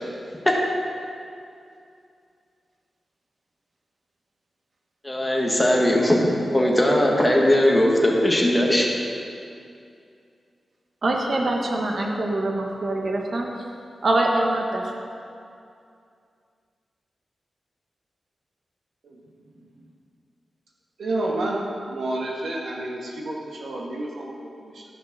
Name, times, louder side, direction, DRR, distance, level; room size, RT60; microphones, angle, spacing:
voice 1, 5.0-8.9, left 1 dB, 10° left, -1 dB, 1.3 m, -19 dB
voice 2, 11.0-13.5 14.0-15.0, right 2 dB, 45° right, 0 dB, 1.0 m, -24 dB
voice 3, 21.0-21.6 21.9-24.8, right 1 dB, 90° right, -2 dB, 1.8 m, -30 dB
12.5 x 6.5 x 6.1 m, 2.5 s
wide cardioid pair, 170°, 0 cm